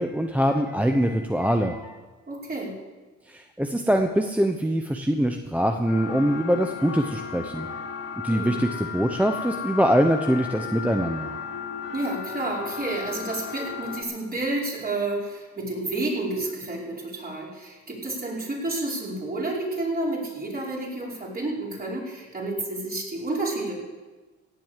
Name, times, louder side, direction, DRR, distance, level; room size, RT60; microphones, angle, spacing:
voice 1, 0.0-1.9 3.3-7.7 8.2-11.3, equal, 5° right, 4 dB, 0.9 m, -23 dB
voice 2, 2.3-2.8 8.3-8.6 11.9-23.8, right 2 dB, 30° right, -4 dB, 5.2 m, -30 dB
sound 1, 5.9-14.0, left 6 dB, 55° left, 3.1 m, -35 dB
17.0 x 7.8 x 7.5 m, 1.3 s
cardioid pair, 90°, 30 cm